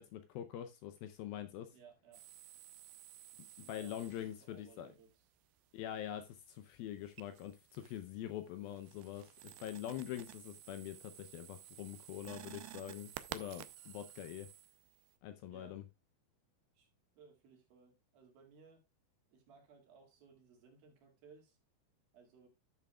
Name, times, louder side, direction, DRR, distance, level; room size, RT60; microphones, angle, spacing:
voice 1, 0.0-1.7 3.7-4.9 5.7-14.5 15.2-15.8, left 11 dB, 80° left, 2.3 m, -44 dB
voice 2, 1.7-2.2 3.4-5.2 15.4-15.8 16.8-16.9 17.2-18.9 19.3-21.6 22.1-22.5, right 5 dB, 65° right, 3.8 m, -61 dB
sound 1, 2.1-4.6 7.0-8.1 8.5-15.1, right 14 dB, 80° right, 2.3 m, -53 dB
13.5 x 7.3 x 2.3 m
omnidirectional pair, 4.7 m